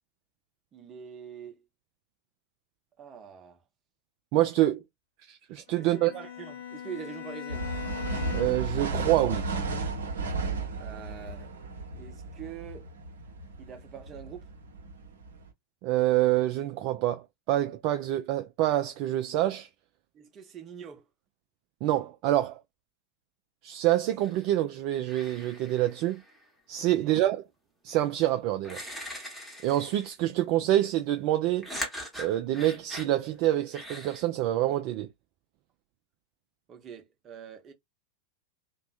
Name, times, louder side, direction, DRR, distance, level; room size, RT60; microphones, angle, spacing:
voice 1, 0.7-1.6 3.0-3.6 5.8-7.7 10.8-11.5 11.9-12.9 13.6-14.5 20.1-21.1 27.0-27.2 36.7-37.7, right 8 dB, 25° right, 0.7 m, -44 dB
voice 2, 4.3-4.8 5.3-6.1 8.3-9.4 15.8-19.7 21.8-22.6 23.6-26.2 26.7-27.5 27.8-28.8 29.6-31.7 32.2-35.1, right 14 dB, 45° right, 0.3 m, -26 dB
Bowed string instrument, 5.7-8.8, left 9 dB, 55° left, 0.5 m, -40 dB
sound 1, 7.5-15.5, right 3 dB, 70° right, 0.7 m, -34 dB
sound 2, 24.2-24.6 25.0-26.4 28.0-28.1 28.6-30.2 31.6-33.1 33.7-34.2, equal, ahead, 0.9 m, -41 dB
2.6 x 2.1 x 2.3 m
figure-of-eight pair, 90°, 0 cm